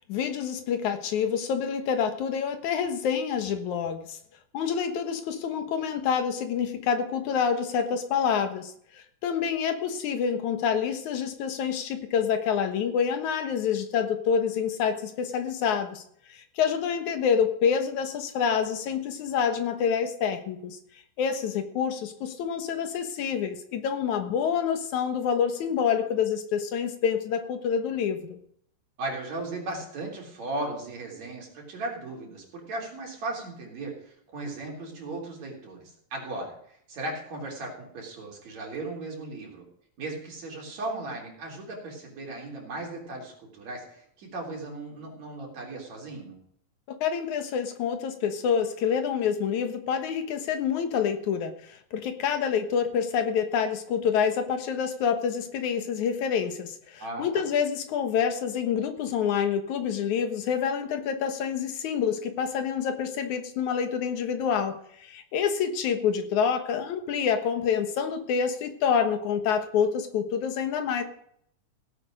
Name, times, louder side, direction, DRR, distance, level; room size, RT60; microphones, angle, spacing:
voice 1, 0.1-4.2 4.5-16.0 16.3-20.8 21.2-28.4 46.9-71.0, left 7 dB, 70° left, 7 dB, 2.6 m, -27 dB
voice 2, 29.0-39.6 40.0-46.4 57.0-57.4, right 2 dB, 55° right, -1 dB, 4.8 m, -37 dB
17.0 x 8.7 x 5.1 m, 0.67 s
omnidirectional pair, 3.7 m